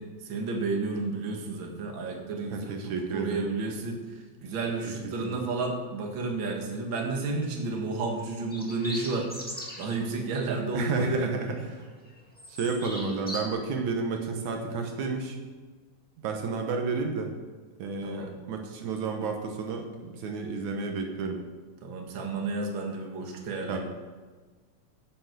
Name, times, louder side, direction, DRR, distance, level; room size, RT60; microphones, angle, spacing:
voice 1, 0.0-4.0 4.4-9.3 9.8-11.3 18.0-18.3 21.8-23.8, right 3 dB, 45° right, 1 dB, 2.2 m, -31 dB
voice 2, 2.5-3.5 4.8-5.5 10.7-11.8 12.5-15.4 16.2-17.3 17.8-21.4 23.7-23.8, right 4 dB, 80° right, 3 dB, 2.5 m, -31 dB
sound 1, 7.3-7.6 8.4-10.0 10.4-10.6 11.0-11.8 12.1-13.4, equal, 5° left, 1.4 m, -40 dB
10.0 x 8.1 x 6.7 m, 1.4 s
omnidirectional pair, 3.3 m